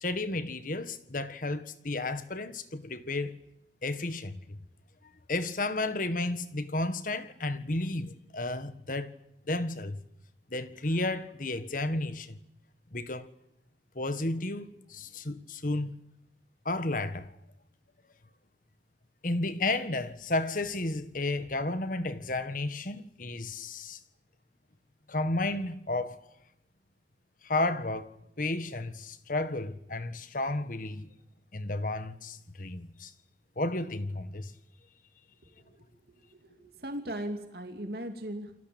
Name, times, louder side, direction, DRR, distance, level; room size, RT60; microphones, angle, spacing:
voice 1, 0.0-3.3 3.8-4.6 5.3-9.1 9.5-10.0 10.5-12.4 12.9-13.3 13.9-15.9 16.6-17.3 19.2-24.0 25.1-26.2 27.4-28.1 28.4-31.1 31.5-33.1 33.6-34.5, left 2 dB, 45° left, 1.6 m, -32 dB
voice 2, 36.3-38.5, right 1 dB, 55° right, 2.7 m, -38 dB
29.0 x 20.5 x 8.8 m
head